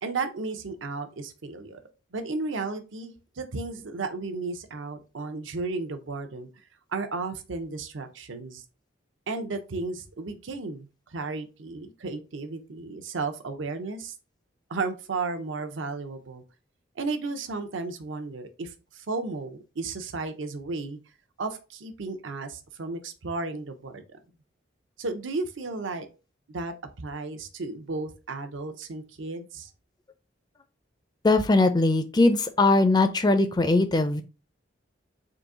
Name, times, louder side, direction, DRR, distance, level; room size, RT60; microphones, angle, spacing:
voice 1, 0.0-1.8 2.1-6.5 6.9-8.6 9.3-14.1 14.7-16.4 17.0-21.0 21.4-24.2 25.0-26.1 26.5-29.7, right 3 dB, 80° right, 8 dB, 0.6 m, -34 dB
voice 2, 31.2-34.2, left 2 dB, 20° left, 9 dB, 0.4 m, -21 dB
3.8 x 2.7 x 3.6 m, 0.31 s
head